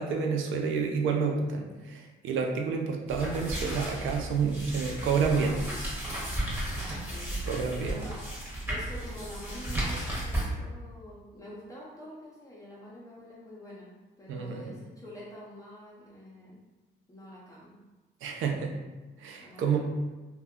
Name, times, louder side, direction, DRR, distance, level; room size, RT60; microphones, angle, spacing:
voice 1, 0.0-5.6 7.5-8.0 14.3-14.8 18.2-18.8 19.2-19.8, right 5 dB, 80° right, 2 dB, 0.5 m, -29 dB
sound 1, 3.1-10.5, right 1 dB, 10° right, 1.1 m, -34 dB
voice 2, 7.9-8.2 8.7-13.9 14.2-16.6 17.1-17.8 19.4-19.8, equal, 15° left, -7 dB, 0.7 m, -46 dB
2.2 x 2.1 x 3.5 m, 1.2 s
cardioid pair, 90°, 20 cm